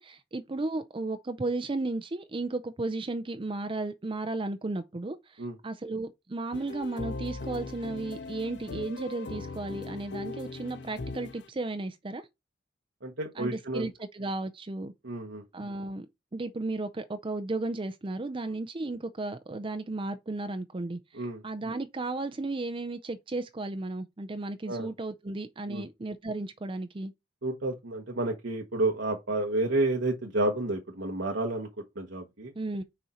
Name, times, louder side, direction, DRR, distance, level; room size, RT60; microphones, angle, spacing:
voice 1, 0.0-12.3 13.4-14.9 15.5-16.1 16.3-27.1 32.6-32.8, right 2 dB, 30° right, 0.5 m, -34 dB
sound 1, 6.5-11.5, left 3 dB, 70° left, 0.6 m, -39 dB
voice 2, 13.0-13.9 15.0-15.4 18.5-18.6 21.1-21.4 24.7-24.9 25.7-25.9 27.4-32.5, right 2 dB, 80° right, 1.2 m, -30 dB
6.4 x 4.4 x 4.2 m
head